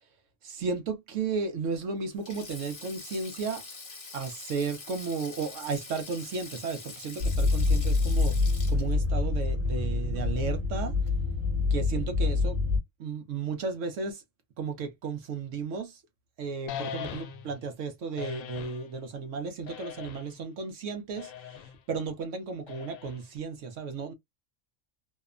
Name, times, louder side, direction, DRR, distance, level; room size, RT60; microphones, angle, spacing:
voice 1, 0.4-3.6 4.1-10.9 11.7-12.6 13.0-14.2 14.6-16.0 16.4-24.1, right 4 dB, 70° right, 0.9 m, -34 dB
Sink (filling or washing), 2.1-10.6 10.8-11.1 12.3-12.5, left 4 dB, 40° left, 1.1 m, -45 dB
sound 1, 7.2-12.8, left 3 dB, 45° right, 1.0 m, -26 dB
sound 2, 16.7-17.6 18.2-18.9 19.7-20.4 21.2-21.8 22.7-23.4, left 9 dB, 80° left, 1.0 m, -40 dB
2.8 x 2.1 x 2.3 m
omnidirectional pair, 1.4 m